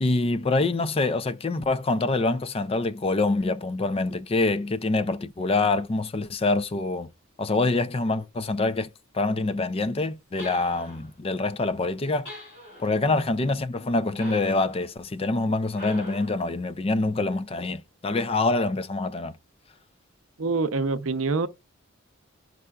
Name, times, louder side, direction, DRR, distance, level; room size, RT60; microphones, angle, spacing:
voice 1, 0.0-7.1 7.4-8.9 9.1-12.3 12.8-19.3, left 3 dB, 30° left, 0.4 m, -25 dB
sound 1, 10.4-11.1 12.3-13.0 14.2-14.8 15.7-16.4, left 1 dB, 55° left, 5.0 m, -42 dB
voice 2, 20.4-21.5, right 3 dB, 70° right, 0.7 m, -25 dB
10.5 x 5.5 x 2.3 m
head